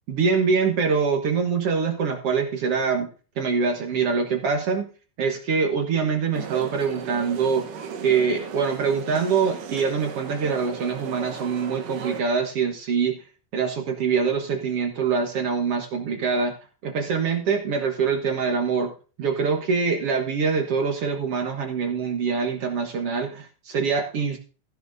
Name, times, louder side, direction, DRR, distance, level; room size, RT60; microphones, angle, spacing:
voice 1, 0.1-3.1 3.4-4.9 5.2-7.7 8.0-13.2 13.5-16.5 16.8-18.9 19.2-24.4, right 5 dB, 55° right, 3 dB, 1.8 m, -24 dB
sound 1, 6.3-12.2, right 6 dB, 75° right, 2.7 m, -36 dB
15.0 x 11.0 x 2.7 m, 0.37 s
omnidirectional pair, 4.0 m